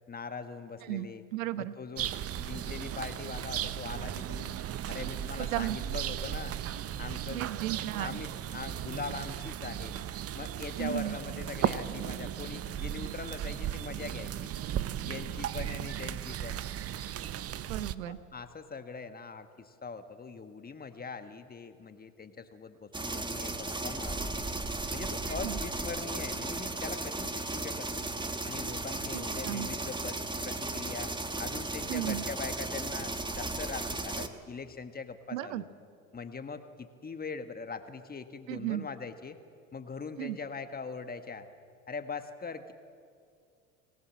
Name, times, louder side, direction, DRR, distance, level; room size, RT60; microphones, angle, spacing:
voice 1, 0.1-1.2 1.6-4.6 4.9-6.6 7.0-7.5 8.0-10.0 10.3-14.5 15.0-16.6 18.0-24.5 24.9-28.1 28.5-35.7 36.1-39.4 39.7-41.5 41.9-42.7, left 5 dB, 20° left, 9 dB, 1.6 m, -42 dB
voice 2, 0.8-1.7 5.4-5.8 7.3-8.2 10.8-11.2 17.7-18.2 25.3-25.6 29.1-29.7 31.9-32.2 35.3-35.6 38.5-38.9 40.2-40.4, right 14 dB, 70° right, 14 dB, 1.1 m, -35 dB
sound 1, 2.0-18.0, right 11 dB, 35° right, 0.9 m, -36 dB
sound 2, 22.9-34.3, right 2 dB, 10° right, 1.6 m, -35 dB
26.0 x 18.5 x 7.5 m, 2.3 s
hypercardioid pair, 75°, 42 cm